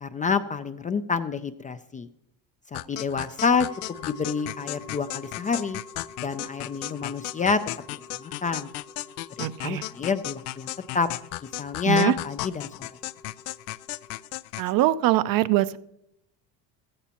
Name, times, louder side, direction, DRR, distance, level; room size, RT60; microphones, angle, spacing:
voice 1, 0.0-2.1 2.7-3.7 4.0-5.8 6.2-7.6 7.9-8.7 9.4-11.1 11.6-12.9, left 5 dB, 20° left, 10 dB, 0.4 m, -28 dB
sound 1, 2.7-14.7, left 19 dB, 85° left, 0.5 m, -36 dB
sound 2, 3.5-14.3, left 3 dB, 65° left, 2.2 m, -48 dB
voice 2, 9.4-9.8 11.9-12.1 14.6-15.8, right 15 dB, 55° right, 15 dB, 0.6 m, -22 dB
15.5 x 14.5 x 2.9 m, 0.77 s
cardioid pair, 125°, 41 cm